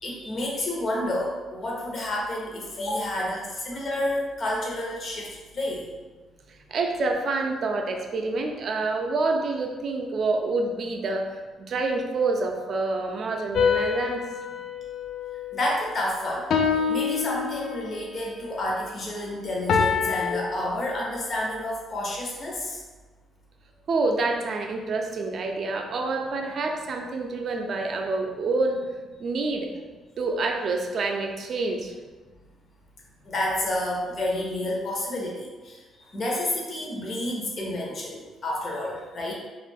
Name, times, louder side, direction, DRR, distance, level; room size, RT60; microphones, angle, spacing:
voice 1, 0.0-5.9 15.5-16.5 16.9-22.8 33.2-39.3, left 1 dB, 50° left, -2 dB, 0.8 m, -30 dB
voice 2, 6.7-14.2 23.9-28.8 29.2-29.7 30.2-31.9, right 3 dB, 55° right, 3 dB, 0.4 m, -27 dB
sound 1, 13.5-15.9 16.5-18.1 19.7-20.3, left 6 dB, 65° left, 0.3 m, -26 dB
2.6 x 2.4 x 3.4 m, 1.3 s
cardioid pair, 90°, 0 cm